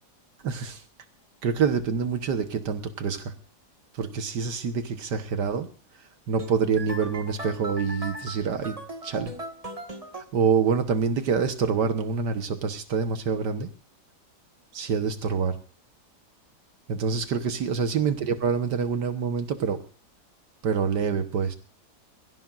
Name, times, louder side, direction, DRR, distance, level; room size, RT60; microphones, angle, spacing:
voice 1, 0.4-0.8 1.4-3.3 3.9-5.7 6.3-8.8 9.0-9.3 10.2-13.7 14.7-15.6 16.9-19.8 20.6-21.5, right 6 dB, 85° right, 8 dB, 1.8 m, -26 dB
Dinner at nine, 6.4-10.2, right 1 dB, 20° right, 1.7 m, -38 dB
23.0 x 15.5 x 2.5 m, 0.39 s
omnidirectional pair, 1.8 m